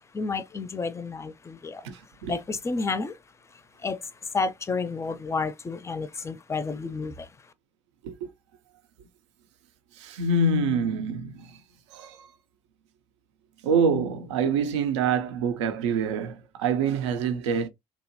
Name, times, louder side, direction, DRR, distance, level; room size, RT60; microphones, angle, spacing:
voice 1, 0.1-1.9 2.3-3.2 3.8-4.1 4.3-7.3, left 4 dB, 20° left, 0.4 m, -30 dB
voice 2, 1.8-2.4 8.0-8.3 9.9-11.6 11.9-12.3 13.6-17.7, right 4 dB, 80° right, 0.4 m, -26 dB
2.8 x 2.2 x 2.5 m
hypercardioid pair, 50°, 15 cm